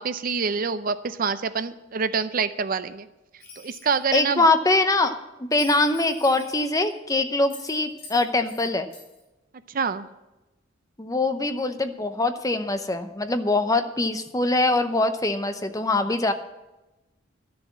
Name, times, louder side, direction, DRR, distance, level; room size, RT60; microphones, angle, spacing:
voice 1, 0.0-3.1 3.6-4.4 9.7-10.1, right 5 dB, 45° right, 12 dB, 0.5 m, -26 dB
Bell, 3.4-4.1 5.5-7.0 7.5-8.7 8.9-9.2, left 4 dB, 50° left, 4.8 m, -45 dB
voice 2, 4.1-8.9 11.0-16.3, left 2 dB, 15° left, 8 dB, 0.7 m, -23 dB
12.5 x 6.9 x 7.2 m, 1.0 s
head